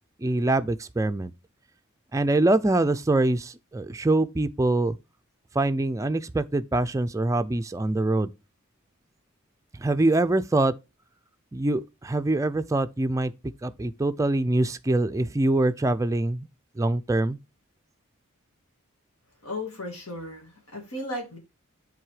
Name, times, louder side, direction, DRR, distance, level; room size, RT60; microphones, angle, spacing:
voice 1, 0.2-1.3 2.1-5.0 5.5-8.3 9.7-10.7 11.5-13.3 13.6-16.5 16.8-17.4, right 2 dB, 15° right, 0.4 m, -24 dB
voice 2, 19.4-21.4, left 1 dB, 85° left, 2.2 m, -35 dB
7.5 x 4.0 x 4.8 m
head